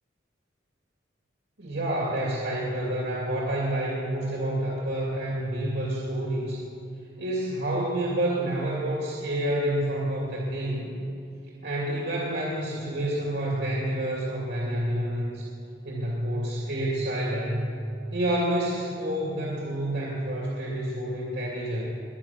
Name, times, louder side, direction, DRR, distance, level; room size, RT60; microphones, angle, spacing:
voice 1, 1.6-6.6 7.2-10.9 11.6-15.4 15.8-17.6 18.1-21.8, right 1 dB, 70° right, -4 dB, 2.7 m, -28 dB
22.5 x 9.2 x 5.9 m, 2.7 s
head